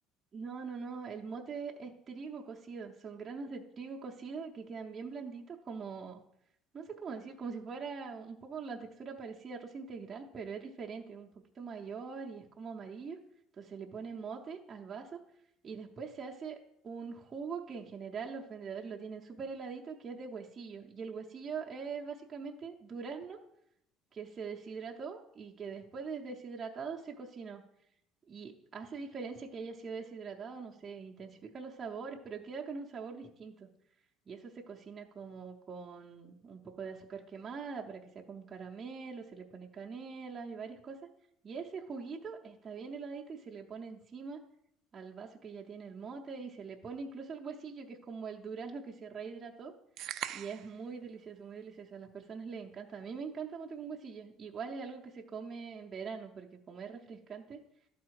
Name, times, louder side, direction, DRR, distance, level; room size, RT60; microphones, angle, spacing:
voice 1, 0.3-6.2 6.7-13.2 13.6-15.2 15.6-16.6 16.8-23.4 24.1-27.7 28.3-33.7 34.3-41.0 41.4-44.4 44.9-49.7 50.3-57.6, right 5 dB, 25° right, -1 dB, 0.7 m, -43 dB
sound 1, 50.0-50.8, right 11 dB, 55° right, 0.3 m, -40 dB
11.5 x 4.2 x 4.7 m, 0.76 s
cardioid pair, 150°, 0 cm